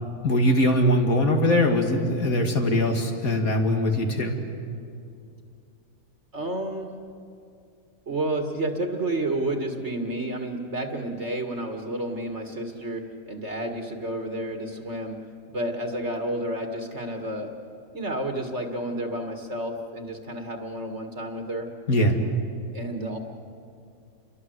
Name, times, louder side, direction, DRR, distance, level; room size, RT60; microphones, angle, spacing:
voice 1, 0.2-4.4 21.9-22.2, left 1 dB, 65° left, 3 dB, 2.8 m, -22 dB
voice 2, 6.3-6.9 8.1-15.2 15.5-17.5 17.9-21.7 22.7-23.2, right 1 dB, 45° right, 3 dB, 2.1 m, -30 dB
29.5 x 23.0 x 7.9 m, 2.5 s
omnidirectional pair, 1.6 m